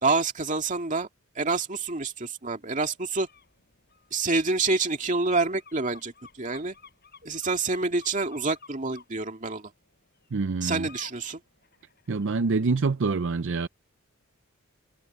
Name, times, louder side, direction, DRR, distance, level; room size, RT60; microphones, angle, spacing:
voice 1, 0.0-1.1 1.4-3.3 4.1-6.1 6.4-6.8 7.2-9.7 10.6-11.4, right 3 dB, 35° right, 2.3 m, -27 dB
sound 1, 3.2-3.5 3.9-9.0 10.9-11.2 11.6-12.4, left 5 dB, 45° left, 5.8 m, -53 dB
voice 2, 10.3-10.9 12.1-13.7, right 4 dB, 55° right, 0.5 m, -26 dB
head